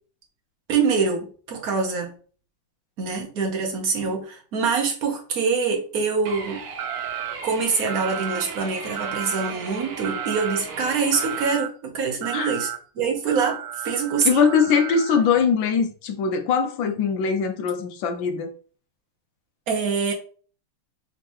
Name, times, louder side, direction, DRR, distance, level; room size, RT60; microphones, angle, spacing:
voice 1, 0.7-2.1 3.0-6.6 7.4-12.7 13.0-14.5 19.7-20.1, right 5 dB, 50° right, 1.2 m, -25 dB
pickslide down basic, 6.3-11.5, right 5 dB, 90° right, 1.7 m, -36 dB
sound 1, 6.8-7.3 7.9-8.4 8.9-9.5 10.0-10.6 11.1-11.7 12.2-12.8 13.3-15.2, right 11 dB, 70° right, 1.1 m, -33 dB
voice 2, 14.2-18.5, left 6 dB, 70° left, 1.4 m, -21 dB
4.2 x 4.0 x 3.0 m
omnidirectional pair, 2.4 m